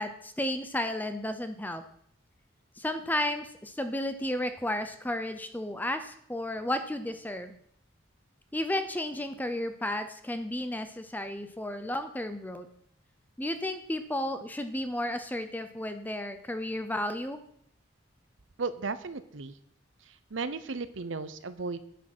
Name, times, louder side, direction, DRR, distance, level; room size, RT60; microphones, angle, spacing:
voice 1, 0.0-1.8 2.8-7.5 8.5-12.7 13.4-17.4, left 1 dB, 10° left, 9 dB, 0.6 m, -33 dB
voice 2, 18.6-19.5 20.3-21.8, right 4 dB, 80° right, 13 dB, 0.8 m, -35 dB
10.0 x 8.6 x 6.1 m, 0.69 s
head